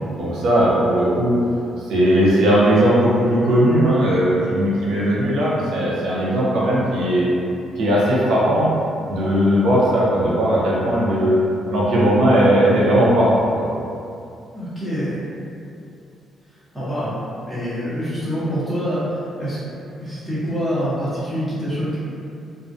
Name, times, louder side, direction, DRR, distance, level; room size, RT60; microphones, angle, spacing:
voice 1, 0.2-1.4 1.9-7.3 7.8-8.7 9.1-11.4 11.7-13.6, equal, 75° right, -6 dB, 0.6 m, -17 dB
voice 2, 14.5-15.2 16.7-19.6 20.0-22.0, equal, 10° right, -13 dB, 0.7 m, -25 dB
2.4 x 2.1 x 2.5 m, 2.5 s
cardioid pair, 90°, 0 cm